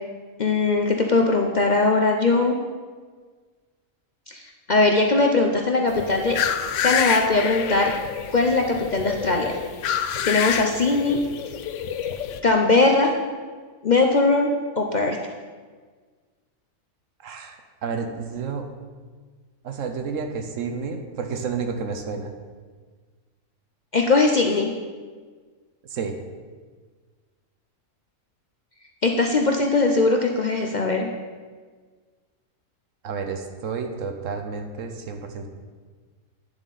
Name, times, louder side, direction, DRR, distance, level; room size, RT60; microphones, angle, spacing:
voice 1, 0.4-2.6 4.3-4.4 4.7-6.4 6.8-7.9 8.3-9.6 10.2-11.2 12.4-13.1 13.8-15.2 23.9-24.7 29.0-31.1, left 3 dB, 45° left, 2 dB, 0.6 m, -20 dB
sound 1, 5.9-12.4, left 9 dB, 70° left, 0.9 m, -28 dB
voice 2, 17.2-18.7 19.6-22.3 25.9-26.2 33.0-35.5, right 5 dB, 70° right, 6 dB, 1.2 m, -30 dB
10.0 x 7.5 x 4.0 m, 1.5 s
omnidirectional pair, 1.4 m